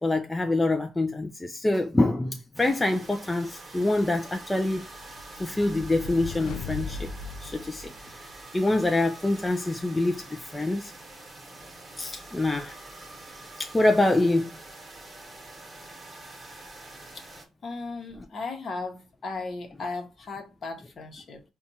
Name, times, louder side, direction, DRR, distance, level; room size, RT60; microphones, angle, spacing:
voice 1, 0.0-4.9 5.4-7.1 7.4-7.9 8.5-10.9 12.0-12.8 13.6-14.5, left 2 dB, 15° left, 0.4 m, -25 dB
sound 1, 2.5-17.5, right 2 dB, 25° right, 1.1 m, -46 dB
sound 2, 4.9-8.5, left 4 dB, 80° left, 0.4 m, -38 dB
voice 2, 17.6-21.4, left 3 dB, 50° left, 0.9 m, -36 dB
4.2 x 2.3 x 2.6 m
cardioid pair, 90°, 0 cm